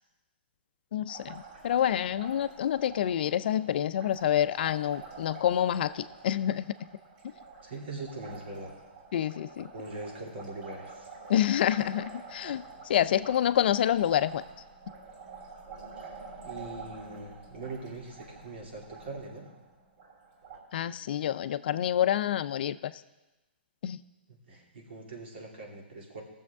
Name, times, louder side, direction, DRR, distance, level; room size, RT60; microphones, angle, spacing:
voice 1, 0.9-6.7 9.1-9.7 11.3-12.6 12.9-14.4 20.7-22.9 23.8-24.0, left 10 dB, 60° left, 14 dB, 0.5 m, -27 dB
Liquid, 1.1-20.6, right 4 dB, 50° right, 2.8 m, -48 dB
voice 2, 7.6-8.7 9.7-11.1 16.0-16.2 16.4-19.5 24.3-26.2, right 2 dB, 75° right, -2 dB, 2.8 m, -42 dB
17.0 x 7.1 x 3.6 m, 1.1 s
hypercardioid pair, 140°, 6 cm